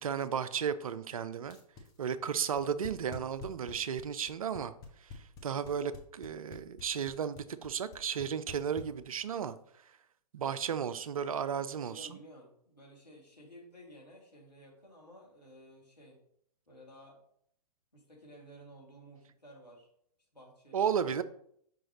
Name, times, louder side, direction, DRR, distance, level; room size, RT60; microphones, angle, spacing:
voice 1, 0.0-1.6 2.0-4.7 5.0-9.6 10.3-12.2 20.7-21.2, right 7 dB, 60° right, 13 dB, 0.5 m, -34 dB
sound 1, 1.4-9.4, left 5 dB, 20° left, 0.9 m, -48 dB
voice 2, 11.8-16.2 16.7-17.2 17.9-19.9 20.3-21.2, equal, 90° left, -2 dB, 2.4 m, -54 dB
6.2 x 5.2 x 3.0 m, 0.68 s
figure-of-eight pair, 115°, 21 cm